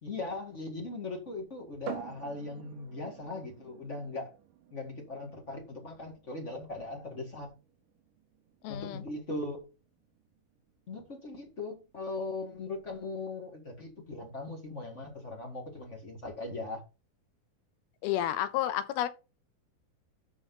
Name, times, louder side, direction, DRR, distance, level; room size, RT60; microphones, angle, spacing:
voice 1, 0.0-4.3 4.7-7.5 8.7-9.6 10.9-16.8, left 2 dB, 35° left, 1.2 m, -39 dB
sound 1, 1.9-15.4, right 9 dB, 70° right, 2.5 m, -51 dB
voice 2, 8.6-9.0 18.0-19.1, left 12 dB, 85° left, 2.8 m, -31 dB
12.5 x 4.5 x 3.8 m
omnidirectional pair, 4.3 m